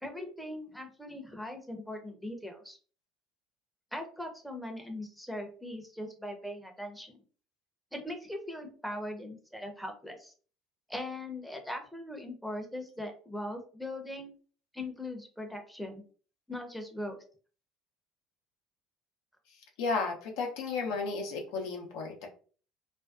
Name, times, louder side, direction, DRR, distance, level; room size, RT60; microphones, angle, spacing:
voice 1, 0.0-2.8 3.9-7.2 7.9-10.3 10.9-14.3 14.7-16.0 16.5-17.2, left 1 dB, ahead, 3 dB, 0.6 m, -40 dB
voice 2, 19.8-22.3, left 4 dB, 70° left, 1 dB, 0.5 m, -33 dB
2.5 x 2.2 x 2.3 m, 0.40 s
hypercardioid pair, 65°, 0 cm